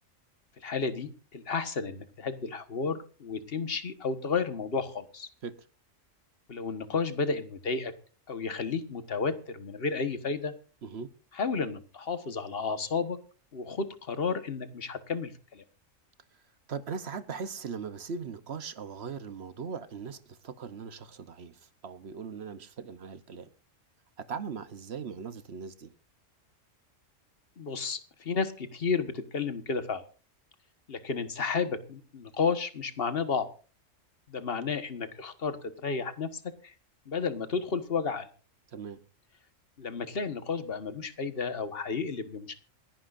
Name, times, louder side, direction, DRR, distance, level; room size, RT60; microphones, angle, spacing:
voice 1, 0.6-5.3 6.5-7.9 8.3-10.5 11.4-13.2 13.5-15.6 27.6-30.0 30.9-33.5 34.3-36.7 37.1-38.3 39.8-42.6, left 5 dB, 50° left, 1.6 m, -32 dB
voice 2, 16.7-23.5 24.2-25.9 38.7-39.0, right 6 dB, 55° right, 1.1 m, -39 dB
27.0 x 10.5 x 2.6 m
omnidirectional pair, 1.3 m